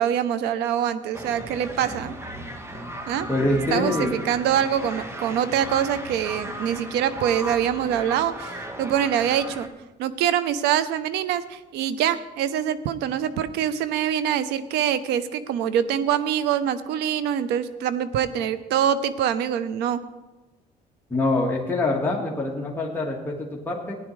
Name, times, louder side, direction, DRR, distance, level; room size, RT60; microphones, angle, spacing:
voice 1, 0.0-2.2 3.1-3.3 3.7-9.7 10.0-20.0, right 9 dB, 85° right, 13 dB, 0.7 m, -24 dB
sound 1, 1.1-9.7, equal, 15° right, 1.1 m, -36 dB
voice 2, 3.3-4.1 21.1-24.0, left 2 dB, 10° left, -3 dB, 1.6 m, -25 dB
15.5 x 10.0 x 3.2 m, 1.1 s
cardioid pair, 110°, 17 cm